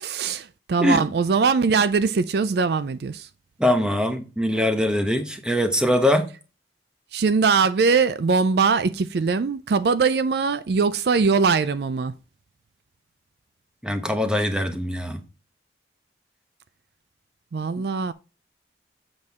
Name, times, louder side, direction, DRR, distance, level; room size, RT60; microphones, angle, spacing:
voice 1, 0.0-3.3 7.1-12.1 17.5-18.1, right 5 dB, 60° right, 0.4 m, -21 dB
voice 2, 3.6-6.3 13.8-15.2, left 1 dB, 5° right, 0.9 m, -22 dB
7.5 x 6.1 x 3.5 m
head